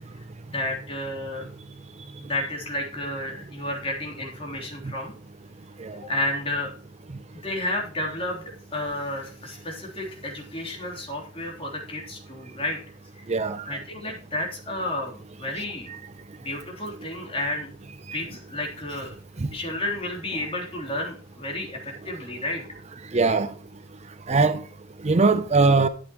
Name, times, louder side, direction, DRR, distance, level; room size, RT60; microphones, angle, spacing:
voice 1, 0.5-1.5 2.2-5.1 6.0-6.7 7.3-12.8 13.1-13.2 13.6-15.9 16.4-17.7 18.1-19.1 19.5-22.6, left 1 dB, 30° left, 3.3 m, -31 dB
voice 2, 13.3-13.6 23.1-23.5 24.3-24.6 25.0-25.9, right 3 dB, 35° right, 0.6 m, -20 dB
12.5 x 8.1 x 3.0 m
head